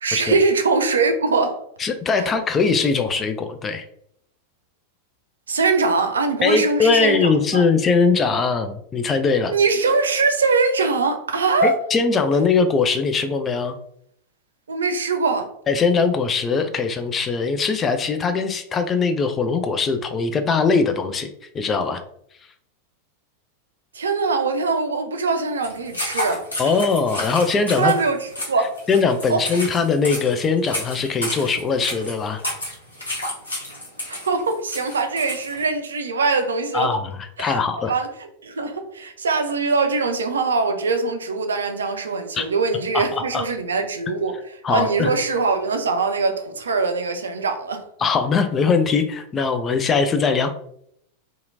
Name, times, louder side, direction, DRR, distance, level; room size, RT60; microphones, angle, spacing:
voice 1, 0.0-1.6 2.2-2.3 5.5-7.6 9.5-11.8 14.7-15.5 23.9-26.5 27.8-28.7 29.3-29.4 34.1-36.9 37.4-44.4 44.7-47.8, right 4 dB, 70° right, 0.4 m, -22 dB
voice 2, 1.8-3.8 6.4-9.5 11.6-13.8 15.7-21.3 21.5-22.0 26.6-27.9 28.9-32.4 36.7-37.9 42.3-42.4 42.9-43.4 44.6-45.1 48.0-50.5, left 4 dB, 20° left, 0.3 m, -21 dB
sound 1, 25.6-35.6, left 1 dB, 75° left, 1.0 m, -31 dB
2.8 x 2.5 x 2.5 m
figure-of-eight pair, 90°, 0 cm